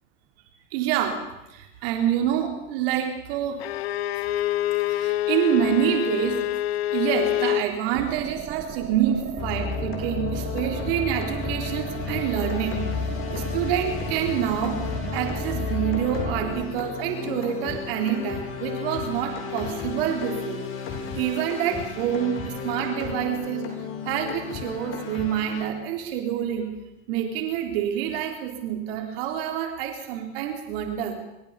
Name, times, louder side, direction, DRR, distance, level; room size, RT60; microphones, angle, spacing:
voice 1, 0.7-1.2 1.5-3.6 4.9-6.4 6.9-12.8 13.3-14.8 15.1-20.6 21.2-23.7 24.1-26.7 27.1-31.2, right 10 dB, 70° right, 4 dB, 3.7 m, -27 dB
Bowed string instrument, 3.6-7.7, left 14 dB, 85° left, 0.9 m, -26 dB
sound 1, 8.0-16.6, right 8 dB, 40° right, 2.3 m, -36 dB
sound 2, 9.4-25.6, left 6 dB, 45° left, 8.0 m, -32 dB
26.5 x 14.5 x 7.1 m, 0.95 s
hypercardioid pair, 95°, 30 cm